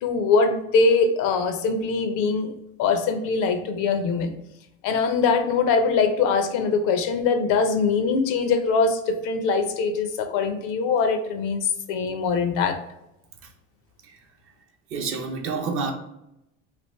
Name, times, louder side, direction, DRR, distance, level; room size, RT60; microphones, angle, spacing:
voice 1, 0.0-2.5 2.8-4.3 4.8-12.8, left 4 dB, 60° left, 0.6 m, -22 dB
voice 2, 14.9-15.9, right 4 dB, 40° right, 0.6 m, -28 dB
3.4 x 2.4 x 3.0 m
supercardioid pair, 110°, 35 cm